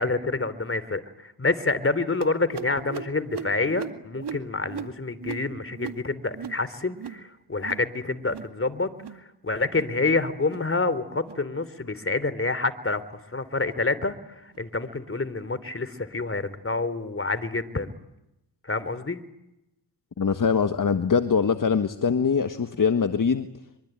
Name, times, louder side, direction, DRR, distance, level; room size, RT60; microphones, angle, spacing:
voice 1, 0.0-17.9 18.6-19.2, left 3 dB, 30° left, 15 dB, 3.3 m, -28 dB
sound 1, 2.2-7.3 7.5-7.9 8.2-8.6 8.9-9.3 9.6-10.0 10.4-10.7 11.2-11.4 12.0-12.2 12.8-13.0 13.6-13.8 14.5-14.6 15.4-15.5, right 6 dB, 65° right, 2.2 m, -39 dB
voice 2, 20.2-23.5, left 6 dB, 45° left, 9 dB, 1.6 m, -23 dB
24.5 x 24.5 x 9.2 m, 0.89 s
cardioid pair, 50°, 44 cm